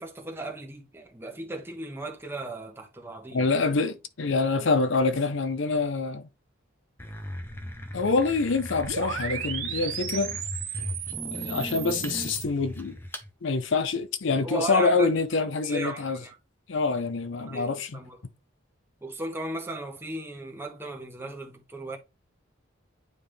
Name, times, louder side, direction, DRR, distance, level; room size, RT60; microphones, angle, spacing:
voice 1, 0.0-3.5 14.4-16.4 17.4-18.2 19.0-22.0, right 2 dB, 10° right, 1.1 m, -36 dB
voice 2, 3.3-6.3 7.9-10.4 11.3-13.0 13.4-16.2 16.7-18.0, left 4 dB, 65° left, 0.6 m, -26 dB
sound 1, 7.0-13.3, equal, 10° left, 0.7 m, -38 dB
sound 2, 8.8-12.4, right 8 dB, 90° right, 1.2 m, -35 dB
9.4 x 3.5 x 3.3 m
head